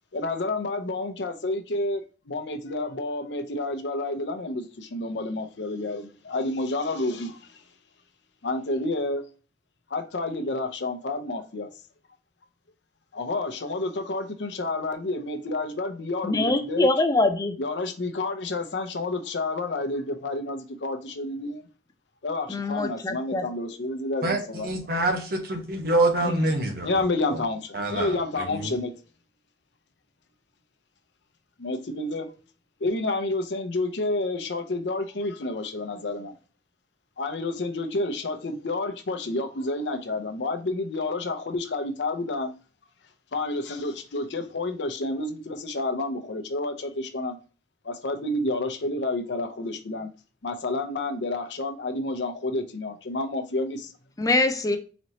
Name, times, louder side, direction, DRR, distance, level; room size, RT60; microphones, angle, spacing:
voice 1, 0.1-7.6 8.4-9.2 9.9-11.7 13.1-16.9 17.6-21.6 22.2-24.9 26.2-26.5 26.8-28.9 31.6-32.3 32.8-36.3 37.2-42.5 43.3-47.4 47.8-50.1 50.4-53.9, left 2 dB, 80° left, 0.7 m, -29 dB
voice 2, 16.2-17.5 22.5-23.5 54.2-54.8, left 2 dB, 20° left, 0.4 m, -23 dB
voice 3, 24.2-27.0 27.3-27.4 27.7-28.8, right 2 dB, 55° right, 1.0 m, -26 dB
4.1 x 3.1 x 2.8 m
head